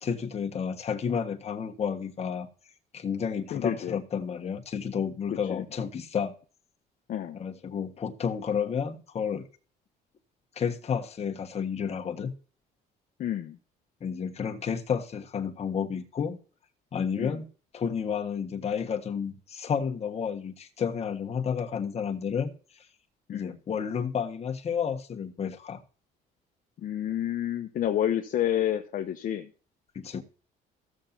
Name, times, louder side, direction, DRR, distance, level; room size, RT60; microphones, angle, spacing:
voice 1, 0.0-2.5 2.9-6.3 7.3-9.4 10.5-12.3 14.0-16.4 16.9-17.5 17.7-22.9 23.3-25.8 29.9-30.2, left 7 dB, 40° left, 1.4 m, -31 dB
voice 2, 3.5-4.0 5.4-5.6 7.1-7.4 13.2-13.6 17.2-17.4 23.3-23.6 26.8-29.5, left 11 dB, 55° left, 0.8 m, -29 dB
15.0 x 7.2 x 2.7 m
cardioid pair, 110°, 17 cm